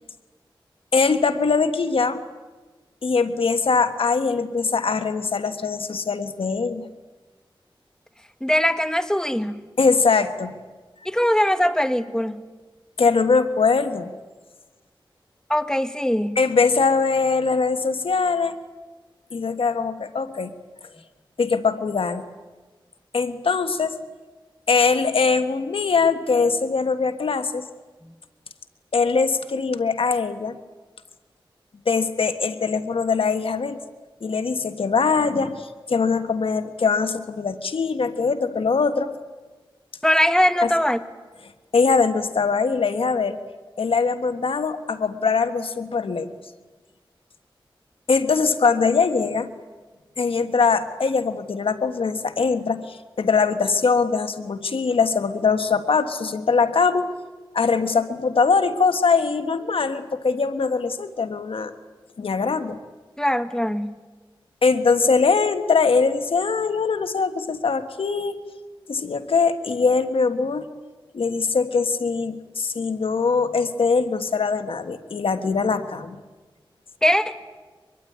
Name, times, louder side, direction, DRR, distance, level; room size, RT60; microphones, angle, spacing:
voice 1, 0.9-2.2 3.0-6.9 9.8-10.5 13.0-14.1 16.3-18.6 19.3-20.5 21.4-22.2 23.1-24.0 24.7-27.7 28.9-30.6 31.8-33.8 34.2-39.1 40.6-40.7 41.7-43.4 43.8-46.3 48.1-49.5 50.2-57.1 57.5-61.7 62.2-62.8 64.6-68.4 68.9-70.7 71.1-76.2, left 4 dB, 85° left, 9 dB, 1.5 m, -22 dB
voice 2, 8.4-9.6 11.0-12.4 15.5-16.4 40.0-41.0 63.2-64.0 77.0-77.4, equal, 5° left, 10 dB, 1.6 m, -21 dB
24.5 x 22.5 x 9.5 m, 1.3 s
cardioid pair, 55°, 9 cm